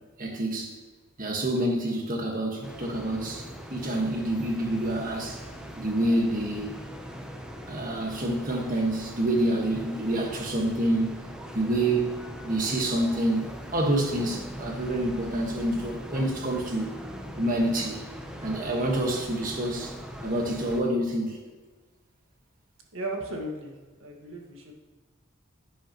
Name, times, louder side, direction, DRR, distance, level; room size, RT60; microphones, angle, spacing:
voice 1, 0.2-0.7 1.2-3.4 3.7-5.4 5.8-6.7 7.7-11.2 11.5-16.9 17.4-18.0 18.4-19.9 20.2-21.4, right 1 dB, 40° right, 1 dB, 1.5 m, -27 dB
sound 1, 2.6-20.8, equal, 5° right, 0.8 m, -41 dB
voice 2, 22.9-23.7 24.0-24.7, right 1 dB, 80° right, 1 dB, 1.7 m, -35 dB
10.5 x 9.1 x 3.0 m, 1.3 s
head